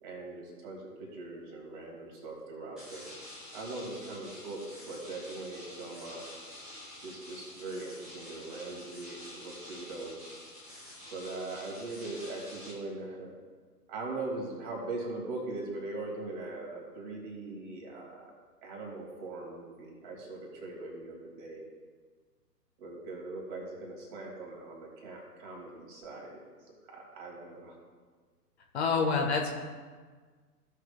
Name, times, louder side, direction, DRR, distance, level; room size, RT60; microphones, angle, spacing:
voice 1, 0.0-3.1 3.5-6.3 7.0-10.3 11.1-13.3 13.9-18.3 18.6-21.7 22.8-27.8 28.9-29.1, right 2 dB, 30° right, -1 dB, 2.4 m, -41 dB
sound 1, 2.8-12.7, left 1 dB, ahead, 0.5 m, -48 dB
voice 2, 28.7-29.5, left 4 dB, 40° left, 1 dB, 1.2 m, -27 dB
15.5 x 6.5 x 2.4 m, 1.5 s
figure-of-eight pair, 125°, 48 cm